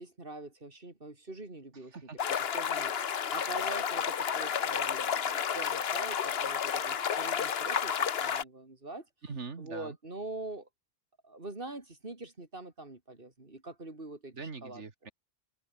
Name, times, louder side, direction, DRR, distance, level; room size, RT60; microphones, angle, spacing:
voice 1, 0.0-2.2 2.5-9.1 9.6-10.7 11.2-14.8, right 2 dB, 45° right, 4.0 m, -44 dB
sound 1, 2.2-8.4, left 8 dB, 55° left, 1.1 m, -31 dB
voice 2, 9.2-10.0 14.3-15.1, right 4 dB, 65° right, 2.4 m, -42 dB
open air
omnidirectional pair, 1.3 m